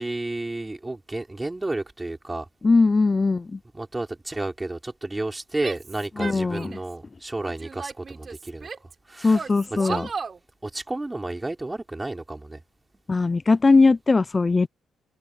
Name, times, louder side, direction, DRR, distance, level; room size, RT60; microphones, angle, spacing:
voice 1, 0.0-2.5 3.7-8.7 9.1-9.4 9.7-10.1 10.6-12.6, right 2 dB, 15° right, 4.7 m, -31 dB
voice 2, 2.6-3.6 6.2-6.7 9.2-10.1 13.1-14.7, left 3 dB, 25° left, 0.4 m, -20 dB
Female speech woman speaking / Yell, 5.6-6.9 7.4-8.9 9.3-10.4, right 5 dB, 40° right, 4.9 m, -35 dB
open air
cardioid pair, 90°, 0 cm